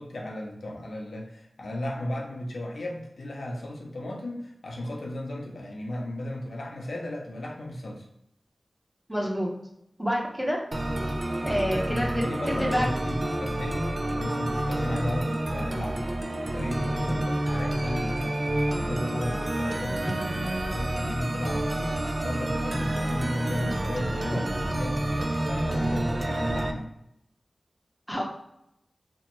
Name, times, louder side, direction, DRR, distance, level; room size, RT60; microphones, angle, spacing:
voice 1, 0.0-8.0 11.5-16.1 16.4-22.0 22.2-26.9, left 1 dB, 90° left, -1 dB, 0.6 m, -35 dB
voice 2, 9.1-9.5 10.0-10.6 11.4-12.9 28.1-28.2, equal, 5° right, -2 dB, 0.8 m, -28 dB
sound 1, 10.7-26.7, right 1 dB, 40° right, 0.3 m, -29 dB
2.9 x 2.1 x 3.0 m, 0.78 s
wide cardioid pair, 60°, 0 cm